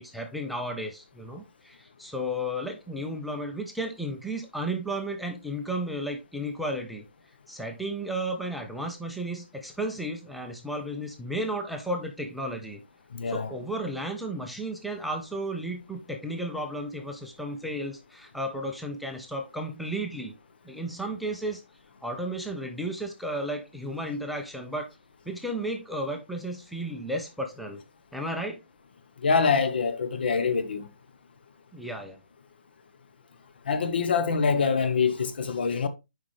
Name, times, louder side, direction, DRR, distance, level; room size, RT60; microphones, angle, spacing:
voice 1, 0.0-7.0 7.5-12.8 13.3-20.3 20.6-21.6 22.0-24.9 25.3-27.8 28.1-28.6 31.7-32.2, right 1 dB, ahead, 0.6 m, -33 dB
voice 2, 13.1-13.5 29.2-30.9 33.7-35.9, left 5 dB, 60° left, 1.0 m, -25 dB
7.4 x 5.0 x 3.2 m
hypercardioid pair, 155°, 6 cm